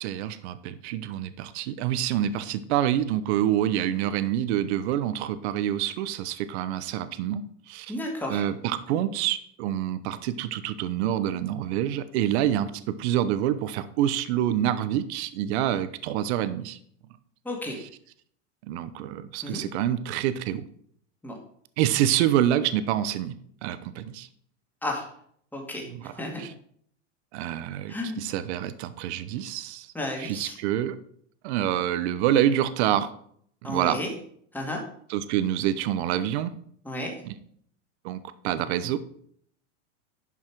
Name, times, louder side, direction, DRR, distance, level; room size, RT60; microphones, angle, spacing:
voice 1, 0.0-8.0 8.3-16.8 17.7-17.8 18.7-20.7 21.8-23.4 23.6-24.3 25.9-26.1 26.4-26.5 27.3-29.9 30.2-31.0 31.4-33.1 33.6-34.0 35.1-36.5 37.2-37.3 38.0-39.0, right 11 dB, 60° right, 13 dB, 0.9 m, -27 dB
voice 2, 7.9-8.4 17.5-17.8 19.4-19.6 21.2-21.3 24.8-25.1 25.5-25.9 26.2-26.4 27.9-28.2 29.9-30.6 33.6-34.1 34.5-34.8 36.8-37.1, left 1 dB, 5° left, 0 dB, 2.1 m, -32 dB
11.0 x 5.5 x 4.6 m, 0.64 s
supercardioid pair, 135°, 37 cm